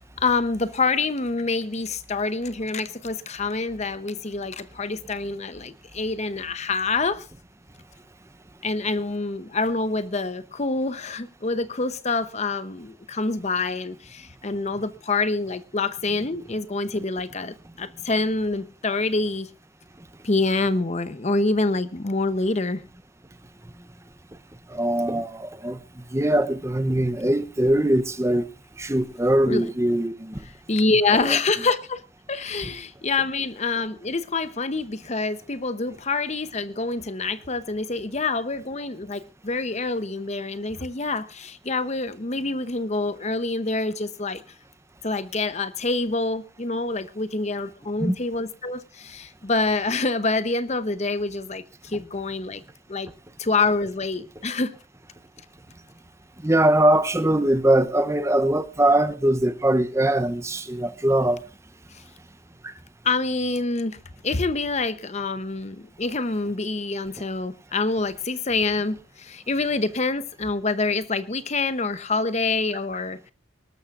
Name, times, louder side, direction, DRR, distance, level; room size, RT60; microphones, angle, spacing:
voice 1, 0.2-7.3 8.6-19.5 20.2-22.8 29.5-29.7 30.7-32.0 32.3-44.4 45.0-52.6 52.9-53.1 53.4-54.7 61.9-62.0 63.0-64.0 64.2-73.3, left 3 dB, 35° left, 0.8 m, -26 dB
voice 2, 24.7-25.8 26.1-28.5 28.8-30.4 31.1-31.4 48.0-48.2 56.4-61.4 62.6-62.7, right 1 dB, 15° right, 0.7 m, -22 dB
24.0 x 13.0 x 2.5 m
head